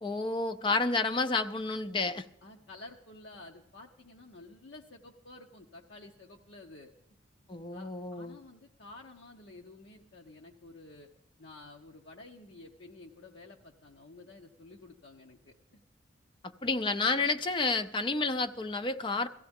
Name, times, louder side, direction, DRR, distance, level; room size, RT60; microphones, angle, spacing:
voice 1, 0.0-2.3 7.5-8.4 16.4-19.3, left 3 dB, 25° left, 10 dB, 0.4 m, -30 dB
voice 2, 2.4-6.9 7.7-11.1 11.4-15.8 17.1-17.4, left 2 dB, 65° left, 1 dB, 0.8 m, -51 dB
17.5 x 14.0 x 3.6 m, 0.85 s
head